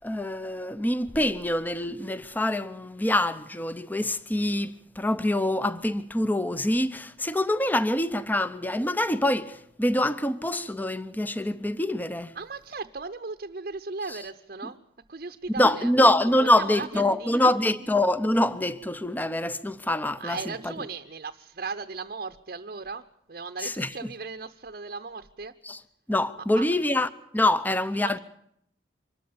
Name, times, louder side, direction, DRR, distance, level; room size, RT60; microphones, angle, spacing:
voice 1, 0.0-12.3 15.6-20.4 23.6-23.9 25.7-25.8 26.1-28.2, left 1 dB, 10° left, 0.8 m, -25 dB
voice 2, 12.3-14.8 15.1-15.9 16.3-17.6 20.2-25.5 26.5-26.8 28.0-28.2, right 4 dB, 55° right, 0.8 m, -37 dB
24.5 x 13.5 x 8.6 m
head